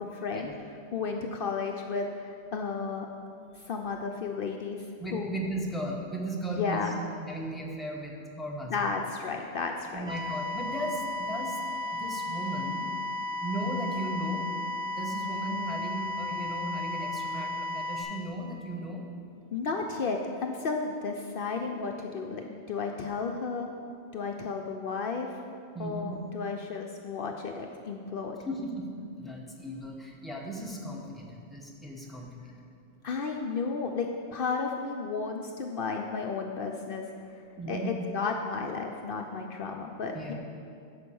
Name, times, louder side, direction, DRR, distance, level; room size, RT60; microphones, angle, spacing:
voice 1, 0.1-0.5 0.9-3.1 3.7-4.8 5.1-5.3 6.4-6.9 8.7-10.1 19.5-23.7 24.1-25.4 25.8-28.4 33.0-37.0 37.7-40.3, left 4 dB, 60° left, 2 dB, 0.7 m, -33 dB
voice 2, 5.0-6.9 7.2-8.9 9.9-11.6 11.9-12.9 13.4-14.5 14.9-19.0 25.7-26.1 28.4-28.9 29.2-32.5 35.1-35.2 37.6-37.9 40.1-40.3, right 1 dB, ahead, -2 dB, 1.1 m, -36 dB
sound 1, 10.1-18.0, left 2 dB, 45° right, 2.0 m, -34 dB
10.5 x 5.2 x 7.0 m, 2.4 s
omnidirectional pair, 1.1 m